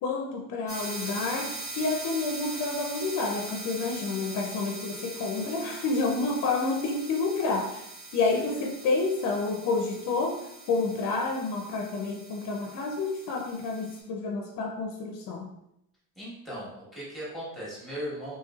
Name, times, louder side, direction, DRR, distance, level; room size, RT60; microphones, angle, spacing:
voice 1, 0.0-7.9 8.1-15.5, left 3 dB, 45° left, 2 dB, 0.5 m, -29 dB
sound 1, 0.7-14.0, right 3 dB, 35° right, 1.0 m, -41 dB
voice 2, 16.2-18.3, equal, ahead, -7 dB, 1.2 m, -37 dB
3.0 x 2.9 x 2.3 m, 0.81 s
cardioid pair, 120°, 42 cm